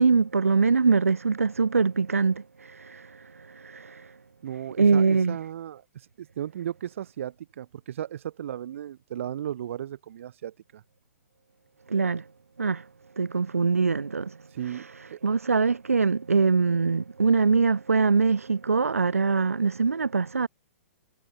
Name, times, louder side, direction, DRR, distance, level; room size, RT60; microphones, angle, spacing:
voice 1, 0.0-4.1 4.8-5.4 11.9-12.2 12.6-12.9 13.2-14.4 14.7-20.5, right 4 dB, 85° right, 2.4 m, -23 dB
voice 2, 4.4-10.8 14.5-14.9 15.1-15.2, right 10 dB, 65° right, 7.6 m, -35 dB
hypercardioid pair, 120°, 8 cm